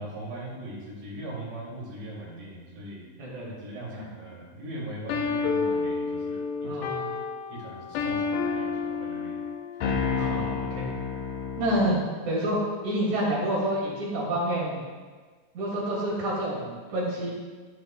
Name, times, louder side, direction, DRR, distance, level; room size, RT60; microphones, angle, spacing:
voice 1, 0.0-3.1 3.6-6.7 7.5-9.4 9.8-10.4, right 1 dB, 75° right, -5 dB, 5.1 m, -40 dB
voice 2, 3.2-3.5 3.9-4.0 6.6-7.1 10.1-10.9 11.6-12.0 12.2-12.6 12.8-14.8 15.5-17.3, right 1 dB, 50° right, -5 dB, 3.7 m, -28 dB
sound 1, 5.1-12.1, left 5 dB, 75° left, 2.5 m, -30 dB
13.5 x 10.5 x 2.4 m, 1.5 s
omnidirectional pair, 4.6 m